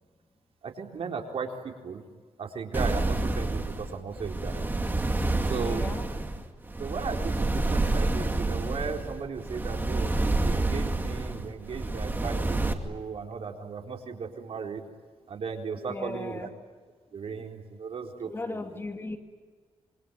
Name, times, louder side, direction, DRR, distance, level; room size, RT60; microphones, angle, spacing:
voice 1, 0.6-2.0 2.4-4.7 5.4-5.9 6.8-10.1 10.4-14.8 15.3-16.5 17.1-18.8, right 5 dB, 60° right, 2 dB, 4.1 m, -36 dB
sound 1, 2.7-12.7, right 2 dB, 20° right, 2.4 m, -28 dB
voice 2, 5.6-6.0 15.8-16.5 18.2-19.2, left 2 dB, 20° left, 5 dB, 2.5 m, -36 dB
26.5 x 24.5 x 9.2 m, 1.5 s
wide cardioid pair, 130°, 11 cm